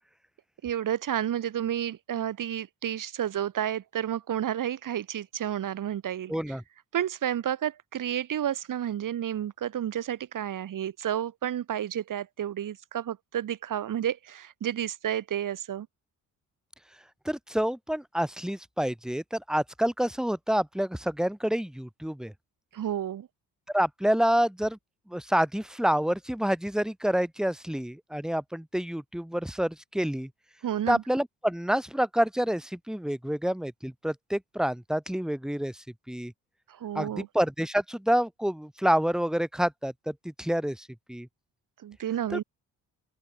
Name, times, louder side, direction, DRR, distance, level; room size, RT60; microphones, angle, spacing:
voice 1, 0.6-6.6 6.9-15.9 22.7-23.3 30.6-31.0 36.7-37.3 41.8-42.4, right 10 dB, 65° right, 5.0 m, -31 dB
voice 2, 6.3-6.6 17.2-22.3 23.7-24.8 25.1-30.3 30.9-36.3 36.9-41.3 42.3-42.4, equal, ahead, 3.0 m, -28 dB
open air
cardioid pair, 80°, 34 cm